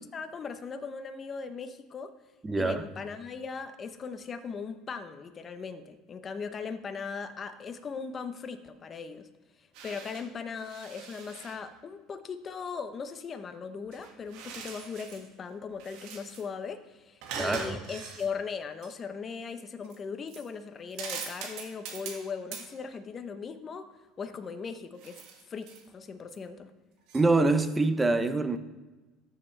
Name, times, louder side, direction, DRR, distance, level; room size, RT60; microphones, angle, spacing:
voice 1, 0.1-2.1 2.6-9.3 9.6-23.9 24.2-25.2 25.5-26.7, left 5 dB, 30° left, 0.8 m, -39 dB
voice 2, 2.4-2.8 17.4-17.8 27.1-28.6, right 3 dB, 15° right, 0.7 m, -25 dB
sound 1, 9.7-10.3 10.6-11.6 13.8-15.3 15.7-16.4 17.2-18.3 18.8-18.9 19.8-20.0 20.3-20.5 20.9-22.3 22.5-22.7 25.0-25.9 26.3-26.4 27.1-27.2, right 5 dB, 70° right, 1.9 m, -42 dB
14.0 x 7.1 x 3.3 m
supercardioid pair, 115°, 0 cm